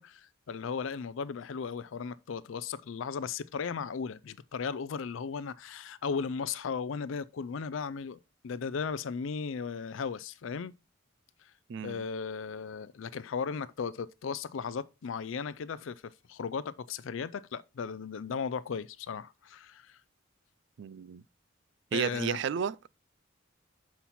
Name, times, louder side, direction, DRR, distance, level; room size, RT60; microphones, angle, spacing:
voice 1, 0.0-8.2 8.4-10.7 11.4-11.5 11.8-20.0 21.9-22.4, left 6 dB, 75° left, 0.4 m, -36 dB
voice 2, 11.7-12.0 20.8-21.2 21.9-22.9, right 7 dB, 60° right, 0.4 m, -32 dB
7.3 x 5.7 x 4.2 m
head